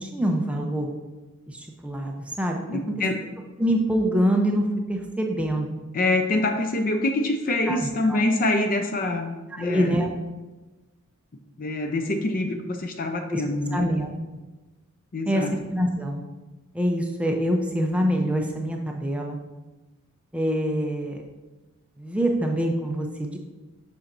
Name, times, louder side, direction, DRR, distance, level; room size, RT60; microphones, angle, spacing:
voice 1, 0.0-0.9 1.5-2.6 3.6-5.7 7.7-8.2 9.5-10.1 13.3-13.4 13.7-14.1 15.3-16.2 16.7-19.4 20.3-21.2 22.0-23.4, equal, 5° right, 1 dB, 0.5 m, -25 dB
voice 2, 2.7-3.3 5.9-9.9 11.6-13.9 15.1-15.6, left 2 dB, 40° left, 5 dB, 0.5 m, -25 dB
7.0 x 5.6 x 2.6 m, 1.1 s
head